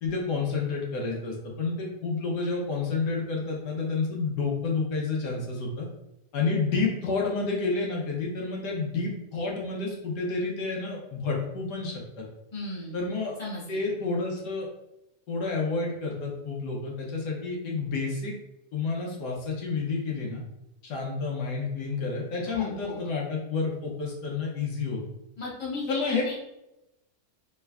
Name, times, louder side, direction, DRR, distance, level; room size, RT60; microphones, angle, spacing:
voice 1, 0.0-5.9 6.3-12.2 12.9-13.3 13.7-14.7 15.3-18.3 18.7-20.4 20.8-25.0 25.9-26.3, left 4 dB, 80° left, -2 dB, 1.3 m, -30 dB
voice 2, 12.5-13.0 13.4-13.8 22.5-23.0 25.4-26.3, left 2 dB, 25° left, -6 dB, 1.2 m, -35 dB
3.4 x 3.1 x 2.2 m, 0.90 s
omnidirectional pair, 1.8 m